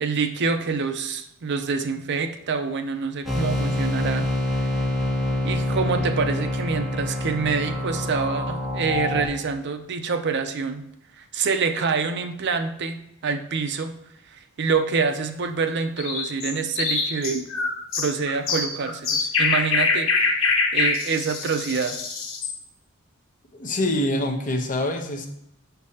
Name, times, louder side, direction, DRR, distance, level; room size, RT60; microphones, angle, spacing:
voice 1, 0.0-4.3 5.4-10.8 11.2-13.9 14.3-17.4 18.0-20.4 20.7-22.0, right 5 dB, 55° right, 8 dB, 0.5 m, -26 dB
sound 1, 3.2-9.2, left 1 dB, ahead, 1.3 m, -26 dB
sound 2, 16.0-22.6, left 4 dB, 70° left, 1.5 m, -24 dB
voice 2, 23.5-25.3, left 1 dB, 40° left, 4 dB, 0.8 m, -25 dB
6.8 x 6.1 x 2.8 m, 0.78 s
head